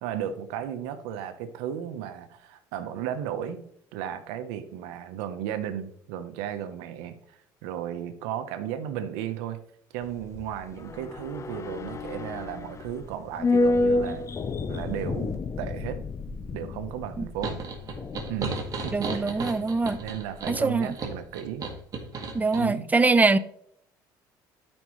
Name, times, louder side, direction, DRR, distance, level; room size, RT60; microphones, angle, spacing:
voice 1, 0.0-3.7 3.9-9.6 9.9-14.2 14.7-16.0 16.5-17.6 18.3-19.5 20.0-21.7 22.6-22.9, right 10 dB, 85° right, 1.0 m, -34 dB
sound 1, 10.0-20.5 20.7-20.8, left 2 dB, 35° left, 0.7 m, -30 dB
sound 2, 17.4-22.7, right 3 dB, 40° right, 2.0 m, -34 dB
voice 2, 18.9-20.0 20.5-20.9 22.3-23.4, right 3 dB, 15° right, 0.6 m, -23 dB
12.0 x 5.4 x 3.2 m
supercardioid pair, 95°, 9 cm